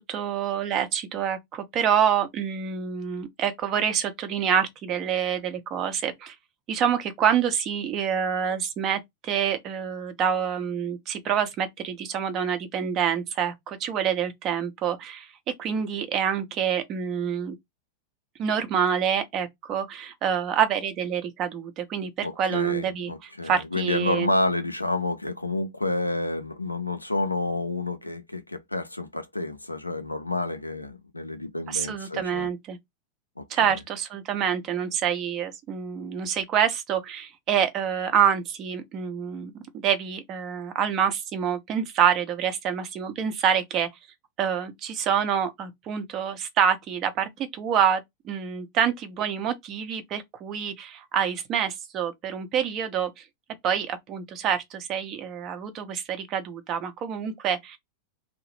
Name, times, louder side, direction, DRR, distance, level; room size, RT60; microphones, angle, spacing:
voice 1, 0.0-6.3 6.7-15.3 15.6-17.6 18.4-24.3 31.7-32.8 33.5-43.9 44.4-53.2 53.6-57.8, right 8 dB, 35° right, 0.6 m, -27 dB
voice 2, 22.2-32.5 33.4-33.8, left 2 dB, 85° left, 0.4 m, -29 dB
2.7 x 2.0 x 3.0 m
figure-of-eight pair, 90°, 0 cm